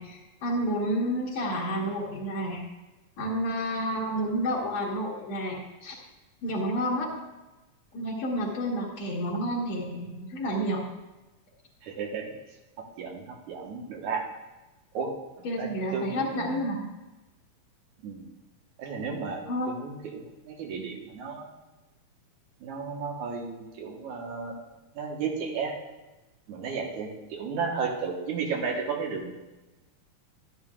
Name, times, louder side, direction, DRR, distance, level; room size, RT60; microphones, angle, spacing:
voice 1, 0.0-2.6 3.2-5.9 6.4-7.1 7.9-10.8 15.4-16.9 19.5-19.7, equal, 65° left, -6 dB, 2.6 m, -30 dB
voice 2, 11.8-12.3 13.0-14.2 14.9-15.1 15.4-16.6 18.0-18.3 18.8-21.5 22.6-24.5 25.0-25.8 26.5-29.3, right 5 dB, 75° right, 0 dB, 2.7 m, -33 dB
12.0 x 11.5 x 2.4 m, 1.1 s
omnidirectional pair, 3.5 m